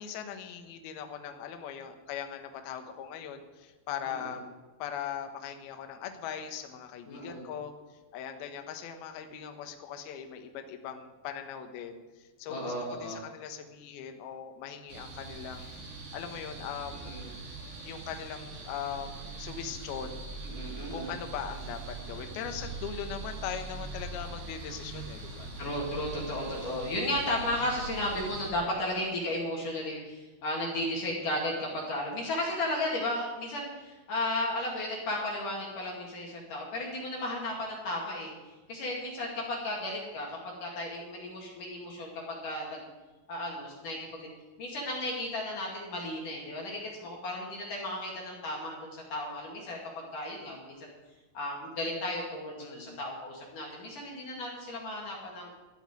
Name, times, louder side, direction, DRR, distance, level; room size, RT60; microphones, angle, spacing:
voice 1, 0.0-4.4 4.8-7.7 8.1-12.0 12.4-15.7 16.1-17.2 17.9-20.2 20.9-25.5 26.3-26.6 52.6-53.0, left 8 dB, 70° left, 5 dB, 2.6 m, -40 dB
voice 2, 4.1-4.4 7.1-7.4 12.5-13.2 17.0-17.3 20.4-21.1 25.6-38.3 38.7-42.9 43.3-44.3 44.6-50.9 51.3-55.5, left 1 dB, 50° left, -2 dB, 3.3 m, -34 dB
sound 1, 14.9-28.5, right 3 dB, 70° right, 4.9 m, -42 dB
13.5 x 8.0 x 9.7 m, 1.2 s
omnidirectional pair, 5.6 m